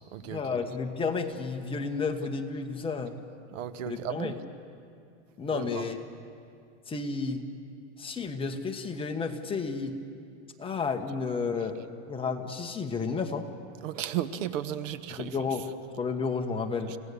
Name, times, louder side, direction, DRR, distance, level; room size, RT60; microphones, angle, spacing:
voice 1, 0.2-3.2 3.8-4.4 5.4-6.0 6.9-7.4 8.0-9.9 10.6-11.8 12.1-13.5 15.1-15.6 16.0-16.9, left 4 dB, 15° left, 3 dB, 1.4 m, -31 dB
voice 2, 3.5-4.3 5.5-5.8 13.8-15.3 16.9-17.0, right 11 dB, 75° right, 12 dB, 1.3 m, -34 dB
30.0 x 17.5 x 6.9 m, 2.4 s
supercardioid pair, 145°, 38 cm